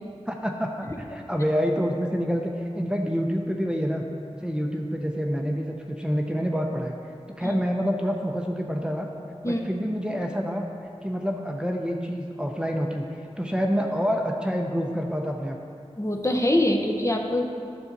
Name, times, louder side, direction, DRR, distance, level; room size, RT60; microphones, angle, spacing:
voice 1, 0.3-4.0 4.3-6.9 7.4-9.1 9.4-10.7 11.0-13.1 13.4-15.6, equal, 10° right, 1 dB, 0.7 m, -27 dB
voice 2, 16.0-17.5, left 1 dB, 25° left, 2 dB, 0.8 m, -24 dB
9.8 x 7.0 x 4.0 m, 2.4 s
wide cardioid pair, 55°, 12 cm